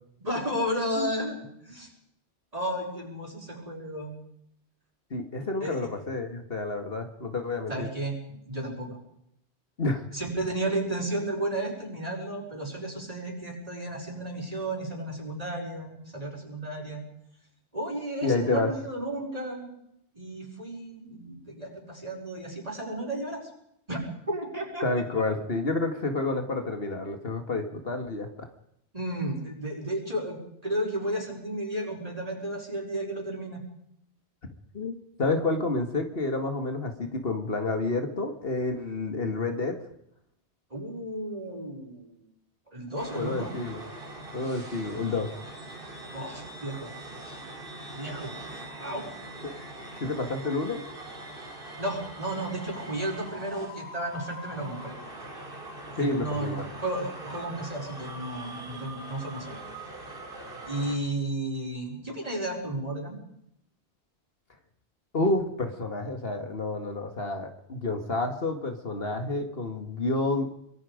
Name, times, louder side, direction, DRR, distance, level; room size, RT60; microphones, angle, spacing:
voice 1, 0.2-1.4 1.6-1.9 2.5-4.2 5.6-5.9 7.7-9.0 10.1-17.0 17.7-19.7 20.2-23.5 23.9-24.0 24.3-24.8 28.9-33.6 40.7-42.2 42.7-43.5 46.1-46.9 47.9-48.3 48.8-49.1 51.8-54.9 55.9-59.6 60.7-63.2, right 1 dB, 35° right, -1 dB, 5.4 m, -33 dB
voice 2, 5.1-7.9 9.8-10.0 18.2-18.7 24.8-28.5 34.7-39.8 43.2-43.8 44.3-45.3 49.4-49.5 50.0-50.8 56.0-56.7 65.1-70.5, left 3 dB, 60° left, 6 dB, 2.1 m, -29 dB
sound 1, 43.0-61.0, right 1 dB, 55° right, 3.2 m, -42 dB
24.5 x 22.0 x 5.1 m, 0.76 s
omnidirectional pair, 1.1 m